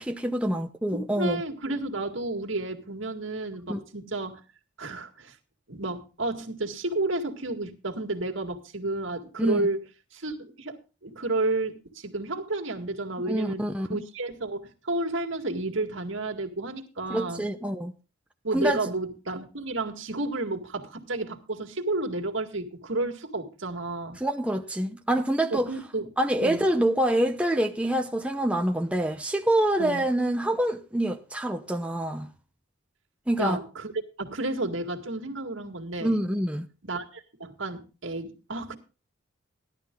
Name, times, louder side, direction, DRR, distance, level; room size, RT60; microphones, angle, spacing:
voice 1, 0.0-1.4 3.7-3.8 9.4-9.7 13.3-13.9 17.1-17.9 18.5-18.9 24.2-25.7 26.2-32.3 33.3-33.6 36.0-36.7, right 1 dB, 5° right, 0.7 m, -26 dB
voice 2, 1.2-4.4 4.8-5.4 5.7-9.8 10.1-10.8 11.0-17.5 18.4-24.2 25.5-26.1 26.4-26.7 29.8-30.1 33.4-33.9 34.2-36.2 36.8-38.8, right 2 dB, 75° right, 2.0 m, -31 dB
16.0 x 11.5 x 3.8 m
head